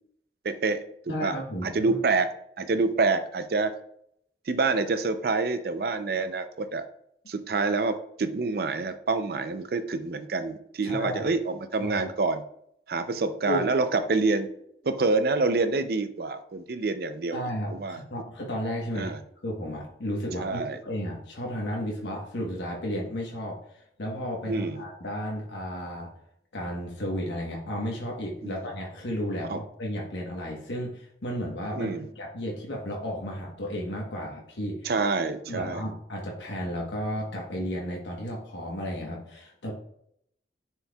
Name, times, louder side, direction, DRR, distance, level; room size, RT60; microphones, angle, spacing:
voice 1, 0.4-1.3 1.6-2.3 2.6-3.7 4.5-6.8 7.3-12.4 12.9-14.5 14.8-17.4 17.7-18.0 19.0-19.2 20.4-20.8 24.5-24.8 28.4-28.6 29.4-29.6 31.7-32.1 34.8-35.9, right 3 dB, 55° right, 10 dB, 0.5 m, -27 dB
voice 2, 1.1-2.0 10.8-11.2 11.8-12.1 13.5-13.7 17.3-19.1 19.4-26.1 26.5-34.9 35.4-39.7, equal, 85° left, -2 dB, 1.2 m, -33 dB
10.0 x 4.5 x 2.3 m, 0.72 s
head